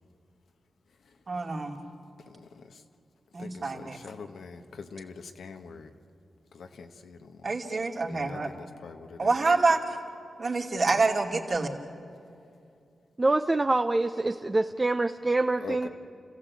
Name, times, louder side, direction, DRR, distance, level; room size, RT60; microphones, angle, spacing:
voice 1, 1.3-1.8 3.3-4.0 7.4-8.5 9.2-9.8 10.4-11.7, right 3 dB, 50° right, 1 dB, 2.4 m, -26 dB
voice 2, 3.4-5.9 6.5-7.4 8.1-9.3 15.6-15.9, left 5 dB, 85° left, 6 dB, 1.3 m, -43 dB
voice 3, 13.2-15.9, right 2 dB, 25° right, 6 dB, 0.6 m, -25 dB
29.5 x 15.5 x 8.5 m, 2.5 s
cardioid pair, 90°, 0 cm